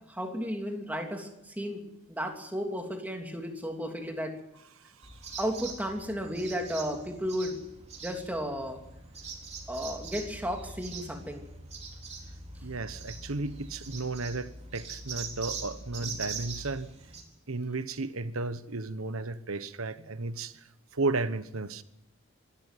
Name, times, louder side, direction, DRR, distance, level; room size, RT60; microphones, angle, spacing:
voice 1, 0.1-1.8 2.1-4.3 5.4-7.6 8.0-8.8 9.7-11.5, equal, 5° right, 2 dB, 3.1 m, -33 dB
sound 1, 5.0-17.2, right 4 dB, 30° right, 3.9 m, -42 dB
voice 2, 12.6-16.9 17.5-20.7 20.9-21.8, right 3 dB, 65° right, 13 dB, 1.2 m, -33 dB
26.0 x 13.0 x 9.3 m, 0.85 s
head